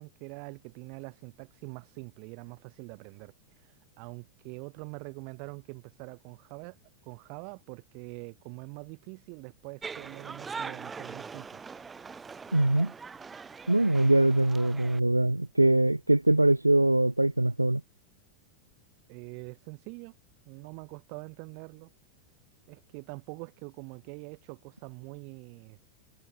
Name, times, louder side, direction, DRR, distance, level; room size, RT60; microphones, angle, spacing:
voice 1, 0.0-3.3 3.6-6.8 7.0-11.6 19.1-20.2 20.5-21.9 22.7-25.8, right 40 dB or more, 45° right, 7.7 m, -44 dB
sound 1, 9.8-15.0, right 5 dB, 15° right, 4.4 m, -42 dB
voice 2, 12.5-12.9 13.7-17.8, right 1 dB, 85° right, 1.2 m, -23 dB
figure-of-eight pair, 90°, 0 cm